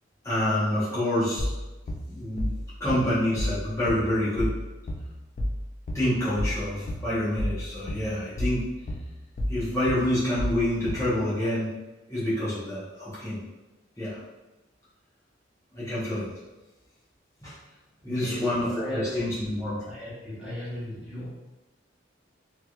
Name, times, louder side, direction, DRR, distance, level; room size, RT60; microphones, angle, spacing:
voice 1, 0.2-1.5 2.1-2.5 2.8-4.5 5.9-8.7 9.5-11.7 12.1-13.4 14.0-14.2 15.7-16.3 17.4-17.6 18.0-19.8, left 1 dB, 15° left, -12 dB, 1.1 m, -27 dB
sound 1, 1.4-11.2, equal, 40° left, 0.4 m, -31 dB
voice 2, 18.0-19.2 19.8-21.3, equal, 5° right, -11 dB, 1.1 m, -35 dB
3.4 x 2.9 x 2.4 m, 1.1 s
head